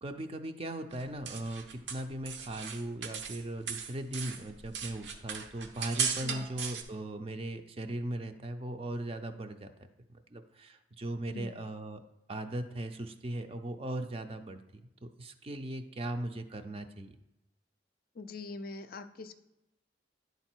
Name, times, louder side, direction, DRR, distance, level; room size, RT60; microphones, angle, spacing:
voice 1, 0.0-9.7 10.1-12.0 12.3-14.6 15.0-17.2, right 1 dB, 30° right, 7 dB, 0.5 m, -38 dB
sound 1, 0.9-3.4 3.7-6.8, right 7 dB, 75° right, 0.9 m, -37 dB
voice 2, 18.2-19.3, left 3 dB, 50° left, 10 dB, 0.5 m, -43 dB
10.5 x 4.0 x 4.5 m, 0.94 s
head